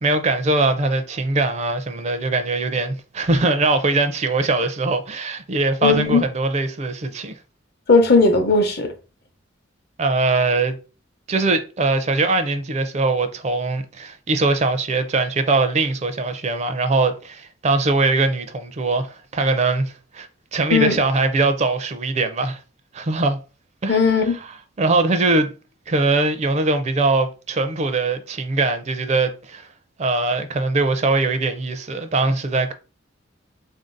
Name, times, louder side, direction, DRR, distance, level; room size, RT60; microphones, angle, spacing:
voice 1, 0.0-7.3 10.0-10.8 11.3-22.6 22.9-23.4 23.8-24.1 24.8-25.5 25.9-29.7 30.0-32.7, right 3 dB, 35° right, 0.4 m, -21 dB
voice 2, 5.8-6.2 7.9-8.9 20.7-21.0 23.9-24.3, left 4 dB, 55° left, 0.8 m, -16 dB
3.8 x 2.6 x 3.7 m
head